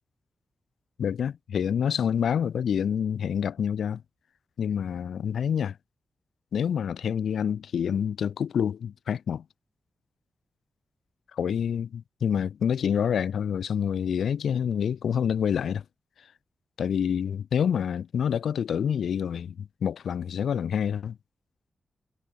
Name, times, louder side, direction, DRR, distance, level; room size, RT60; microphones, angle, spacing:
voice 1, 1.0-4.0 4.6-5.8 6.5-9.4 11.3-15.8 16.8-21.2, left 8 dB, 90° left, 0.9 m, -27 dB
wide cardioid pair, 95°, 0 cm